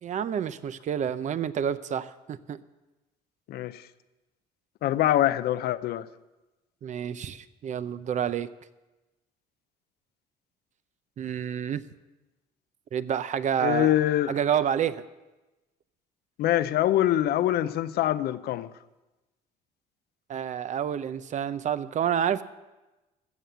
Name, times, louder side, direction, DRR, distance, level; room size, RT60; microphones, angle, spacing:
voice 1, 0.0-2.6 6.8-8.5 11.2-11.8 12.9-13.9 14.3-15.0 20.3-22.4, right 9 dB, 45° right, 0.6 m, -29 dB
voice 2, 3.5-3.8 4.8-6.1 13.6-14.4 16.4-18.7, left 13 dB, 70° left, 0.6 m, -24 dB
14.5 x 7.7 x 6.8 m
cardioid pair, 110°, 17 cm